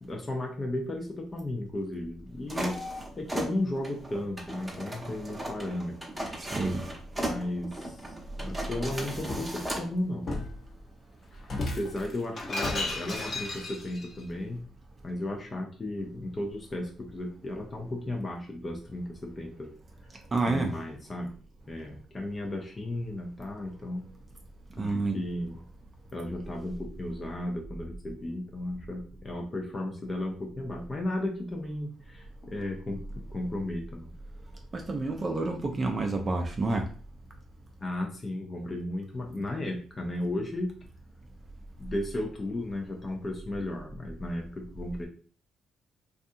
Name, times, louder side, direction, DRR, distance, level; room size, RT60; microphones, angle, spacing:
voice 1, 0.0-2.8 3.2-6.1 7.2-10.4 11.6-14.6 15.0-19.7 20.4-21.4 21.7-24.0 24.8-25.6 26.1-33.0 33.3-34.1 37.8-40.7 41.8-45.1, left 1 dB, 30° left, 0.5 m, -34 dB
sound 1, 2.5-9.9, right 1 dB, 15° right, 0.8 m, -36 dB
voice 2, 6.4-6.8 20.3-20.7 24.8-25.2 34.7-36.9, right 3 dB, 30° right, 0.4 m, -29 dB
Shatter, 8.7-9.5 10.3-10.6 11.4-14.1, left 2 dB, 45° left, 0.9 m, -34 dB
2.5 x 2.4 x 2.6 m
cardioid pair, 90°, 0 cm